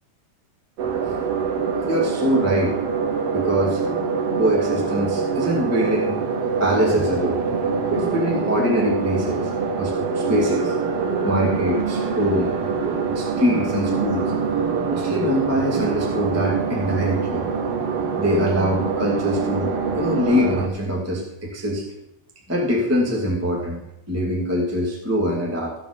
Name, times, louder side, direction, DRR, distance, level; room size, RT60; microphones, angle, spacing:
sound 1, 0.8-20.7, right 5 dB, 75° right, 1.4 m, -24 dB
voice 1, 1.8-2.7 3.3-3.8 4.3-6.2 6.6-7.4 7.9-9.5 9.7-14.3 14.9-17.4 18.1-21.8 22.5-23.8 24.1-25.7, equal, 5° right, -2 dB, 1.4 m, -23 dB
15.5 x 5.2 x 6.7 m, 0.84 s
omnidirectional pair, 4.2 m